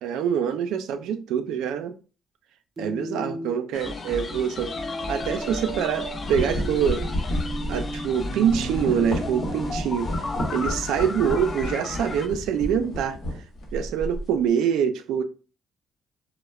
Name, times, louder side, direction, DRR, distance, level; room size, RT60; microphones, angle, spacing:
voice 1, 0.0-1.9 2.8-4.7 5.1-7.1 7.7-10.1 10.5-13.2 13.7-15.2, right 8 dB, 90° right, 0.3 m, -25 dB
sound 1, 2.8-3.6 4.7-9.7, right 2 dB, 35° right, 0.6 m, -35 dB
sound 2, 3.7-12.3, left 3 dB, 45° left, 0.4 m, -34 dB
sound 3, 5.2-5.4 5.9-14.4, equal, 75° left, 0.8 m, -32 dB
2.3 x 2.0 x 3.1 m
cardioid pair, 90°, 0 cm